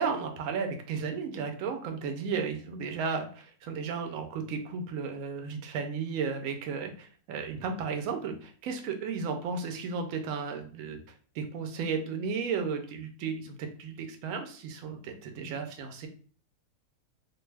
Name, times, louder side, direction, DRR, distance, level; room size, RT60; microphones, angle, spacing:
voice 1, 0.0-11.0 11.3-16.1, right 5 dB, 70° right, 5 dB, 0.9 m, -34 dB
2.5 x 2.2 x 3.2 m, 0.43 s
omnidirectional pair, 1.6 m